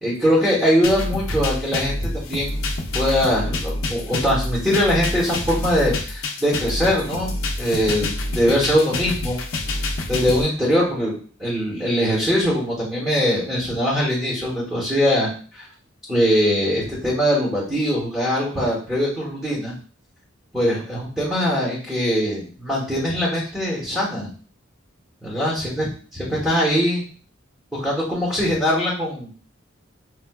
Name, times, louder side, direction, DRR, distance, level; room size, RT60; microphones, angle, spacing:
voice 1, 0.0-2.7 2.9-9.4 10.1-11.1 11.4-15.7 16.1-19.7 20.5-24.3 25.2-25.9 26.1-27.0 27.7-29.3, equal, 5° right, -9 dB, 0.9 m, -22 dB
sound 1, 0.8-10.4, left 2 dB, 85° left, 0.5 m, -27 dB
4.5 x 2.4 x 2.2 m, 0.42 s
head